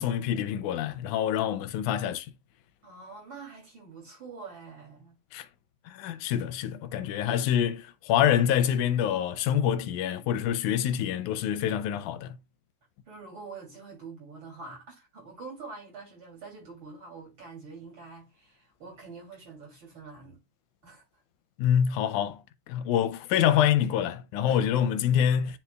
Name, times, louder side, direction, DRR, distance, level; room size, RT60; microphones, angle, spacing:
voice 1, 0.0-2.3 5.3-5.5 5.9-12.4 21.6-22.4 22.7-25.6, left 9 dB, 85° left, 2.1 m, -26 dB
voice 2, 2.8-5.1 13.1-20.4 20.8-21.0 24.5-24.6, right 4 dB, 40° right, 3.5 m, -45 dB
9.8 x 4.3 x 2.3 m
omnidirectional pair, 3.5 m